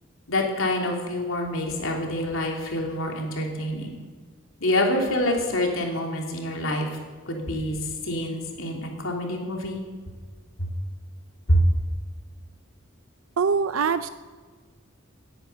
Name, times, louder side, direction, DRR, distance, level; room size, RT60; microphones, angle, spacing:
voice 1, 0.3-3.9 4.6-6.9 7.2-9.8 10.6-10.7 11.5-11.6, left 1 dB, 75° left, 1 dB, 3.2 m, -26 dB
voice 2, 13.4-14.1, right 5 dB, 80° right, 12 dB, 0.5 m, -23 dB
18.0 x 10.0 x 6.9 m, 1.5 s
head